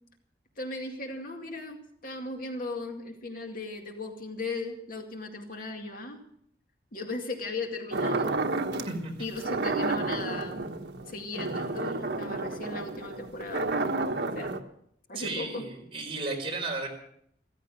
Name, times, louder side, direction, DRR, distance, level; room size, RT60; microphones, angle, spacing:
voice 1, 0.6-6.2 6.9-8.4 9.2-10.7 11.1-13.9 14.3-14.6 15.1-15.6, left 3 dB, 50° left, 3 dB, 2.2 m, -37 dB
sound 1, 7.9-8.9 9.4-14.6, right 3 dB, 75° right, 1.3 m, -31 dB
voice 2, 8.9-9.3 15.1-16.9, right 3 dB, 30° right, 1 dB, 4.6 m, -34 dB
15.5 x 14.5 x 6.4 m, 0.70 s
head